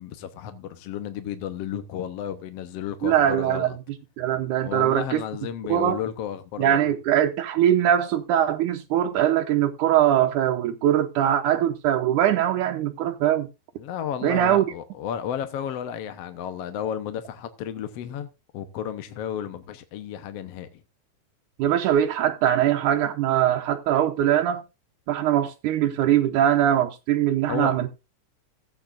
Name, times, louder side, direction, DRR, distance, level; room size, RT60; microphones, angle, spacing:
voice 1, 0.0-3.8 4.6-6.9 13.8-18.3 18.5-20.8 27.5-27.9, left 9 dB, 65° left, 1.8 m, -33 dB
voice 2, 3.0-3.7 4.2-5.2 5.7-6.0 6.6-13.5 14.2-14.7 21.6-24.6 25.1-27.9, right 11 dB, 90° right, 2.4 m, -22 dB
16.5 x 8.9 x 2.5 m
omnidirectional pair, 3.4 m